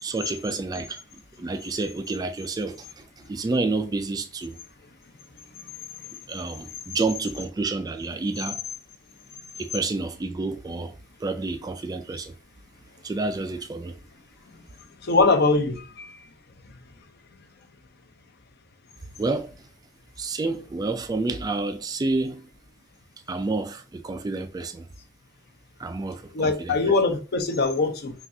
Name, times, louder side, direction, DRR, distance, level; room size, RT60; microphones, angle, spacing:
voice 1, 0.0-4.6 6.3-8.6 9.6-12.3 13.0-14.0 19.2-19.5 20.2-22.5 23.3-24.9 25.8-26.9, right 3 dB, 20° right, 0.3 m, -29 dB
voice 2, 15.0-16.1 26.3-28.1, left 3 dB, 55° left, 0.6 m, -22 dB
5.8 x 2.4 x 2.7 m
head